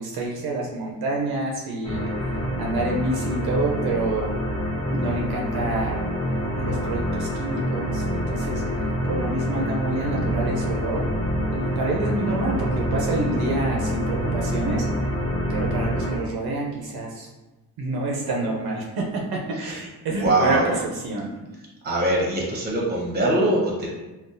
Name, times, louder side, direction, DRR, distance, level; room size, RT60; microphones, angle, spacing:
voice 1, 0.0-2.1 2.6-4.3 4.9-6.0 6.6-11.1 11.5-14.8 15.5-17.3 17.8-21.3, right 2 dB, 70° right, -1 dB, 0.6 m, -28 dB
sound 1, 1.8-16.2, equal, 15° left, 0.7 m, -26 dB
voice 2, 20.1-20.7 21.8-23.9, right 1 dB, 25° right, -3 dB, 0.8 m, -22 dB
3.7 x 2.3 x 2.5 m, 1.1 s
wide cardioid pair, 145°, 39 cm